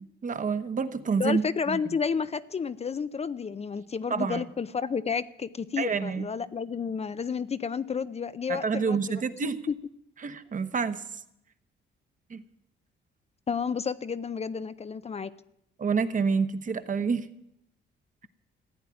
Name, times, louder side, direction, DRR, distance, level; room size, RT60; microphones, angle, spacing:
voice 1, 0.2-1.4 1.7-1.8 4.1-4.4 5.8-6.3 8.5-9.6 10.2-11.2 12.3-12.4 15.8-17.3, right 5 dB, 40° right, 10 dB, 1.2 m, -28 dB
voice 2, 1.2-9.8 13.5-15.3, left 6 dB, 30° left, 14 dB, 0.6 m, -31 dB
14.5 x 9.1 x 9.7 m, 0.80 s
cardioid pair, 90°, 20 cm